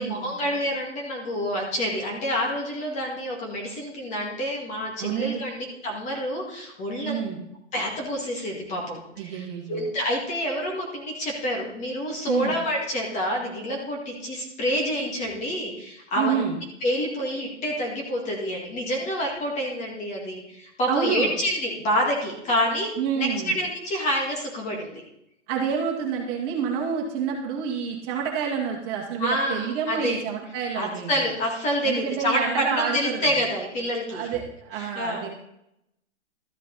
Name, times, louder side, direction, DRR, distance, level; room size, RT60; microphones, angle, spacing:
voice 1, 0.0-7.3 7.7-16.4 16.8-25.0 29.2-30.2 30.8-34.3 34.8-35.3, equal, 20° left, -1 dB, 2.0 m, -28 dB
voice 2, 5.0-5.4 7.0-7.4 9.2-9.8 12.3-12.5 16.2-16.5 20.9-21.3 23.0-23.5 25.5-31.2 31.8-33.3 34.1-35.3, right 7 dB, 30° right, 0 dB, 2.0 m, -28 dB
13.0 x 7.3 x 4.0 m, 0.80 s
hypercardioid pair, 145°, 36 cm